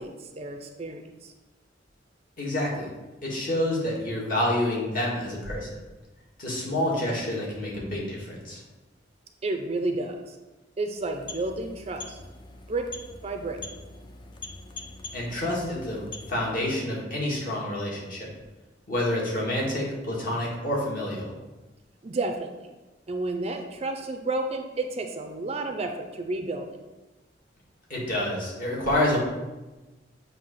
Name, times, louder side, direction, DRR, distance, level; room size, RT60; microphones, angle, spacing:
voice 1, 0.0-1.3 9.4-10.4 10.8-12.2 12.7-12.9 13.2-13.6 22.0-22.5 23.1-26.8, right 2 dB, 35° right, 4 dB, 0.5 m, -31 dB
voice 2, 2.4-2.9 3.2-5.8 6.4-8.6 15.1-18.3 18.9-21.3 27.9-29.2, left 1 dB, 45° left, -4 dB, 1.8 m, -28 dB
sound 1, 10.9-16.7, left 3 dB, 25° left, 0.4 m, -43 dB
7.5 x 2.8 x 5.6 m, 1.1 s
head